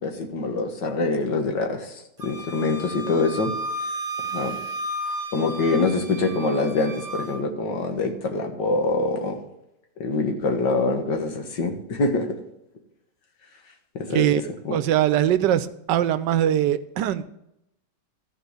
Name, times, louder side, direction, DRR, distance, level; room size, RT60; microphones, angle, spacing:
voice 1, 0.0-3.5 4.3-4.6 5.3-9.4 10.0-12.3 14.0-14.3 14.7-14.8, left 3 dB, 85° left, 2.1 m, -25 dB
Wind instrument woodwind instrument, 2.2-7.4, right 1 dB, 35° right, 1.3 m, -33 dB
voice 2, 14.1-17.2, right 11 dB, 85° right, 1.3 m, -22 dB
14.0 x 4.7 x 8.1 m
omnidirectional pair, 1.9 m